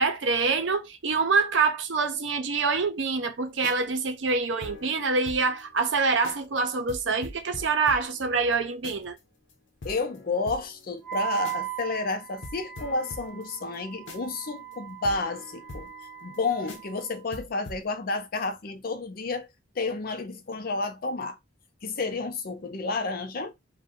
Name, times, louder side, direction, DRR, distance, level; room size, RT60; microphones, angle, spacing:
voice 1, 0.0-9.2, right 4 dB, 75° right, 0.6 m, -25 dB
sound 1, 3.5-5.6 5.9-6.0 6.2-6.6 6.9-9.2 9.5-9.6 9.8-11.8 12.1-12.2 12.4-16.4 16.7-17.0 17.3-17.8, left 2 dB, 85° left, 0.8 m, -44 dB
voice 2, 9.8-15.9 16.2-19.5 19.8-21.4 21.8-23.5, left 3 dB, 50° left, 0.6 m, -31 dB
Wind instrument woodwind instrument, 11.0-17.2, right 14 dB, 15° left, 1.2 m, -38 dB
2.6 x 2.2 x 3.6 m
head